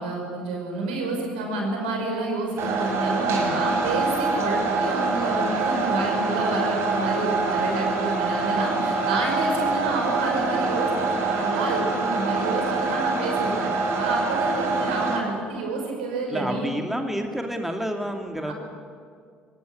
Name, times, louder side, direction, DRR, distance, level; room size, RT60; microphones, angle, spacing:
voice 1, 0.0-16.7 18.5-18.6, right 2 dB, 75° right, 1 dB, 5.8 m, -29 dB
sound 1, 2.6-15.2, right 3 dB, 55° right, 5.1 m, -25 dB
voice 2, 16.3-18.5, equal, 5° right, 4 dB, 2.6 m, -29 dB
21.5 x 19.5 x 9.5 m, 2.2 s
figure-of-eight pair, 55°, 5 cm